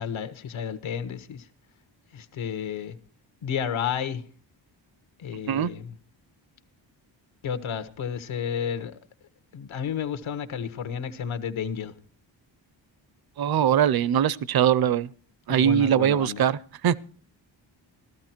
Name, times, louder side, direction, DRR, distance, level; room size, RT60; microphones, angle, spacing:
voice 1, 0.0-1.5 2.1-2.9 3.4-4.2 5.2-5.9 7.4-9.0 9.5-11.9 15.5-16.5, left 7 dB, 90° left, 1.4 m, -31 dB
voice 2, 13.4-15.1 15.5-17.0, right 9 dB, 55° right, 0.6 m, -22 dB
15.0 x 13.5 x 4.4 m
wide cardioid pair, 170°, 46 cm